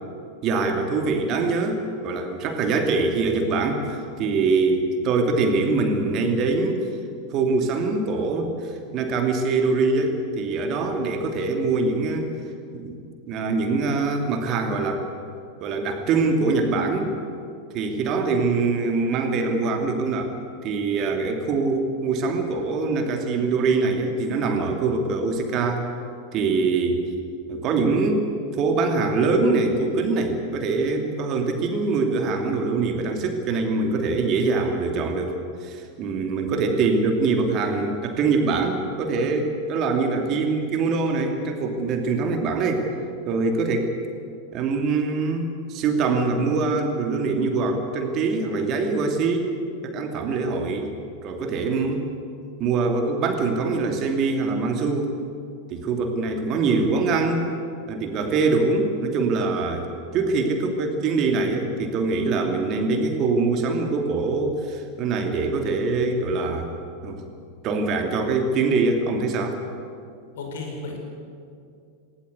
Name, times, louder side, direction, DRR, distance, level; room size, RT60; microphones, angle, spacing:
voice 1, 0.4-6.8 7.3-12.3 12.7-13.0 13.3-15.0 15.6-17.1 17.7-20.3 20.6-25.8 26.3-27.1 27.5-28.3 28.6-42.9 43.3-43.9 44.5-49.5 49.8-50.9 51.2-52.1 52.6-55.2 55.7-57.5 57.9-66.7 67.0-67.2 67.6-69.6, right 3 dB, 35° right, 4 dB, 2.8 m, -23 dB
voice 2, 70.4-71.0, left 3 dB, 60° left, 2 dB, 5.3 m, -33 dB
19.0 x 17.5 x 8.3 m, 2.4 s
figure-of-eight pair, 90°, 0 cm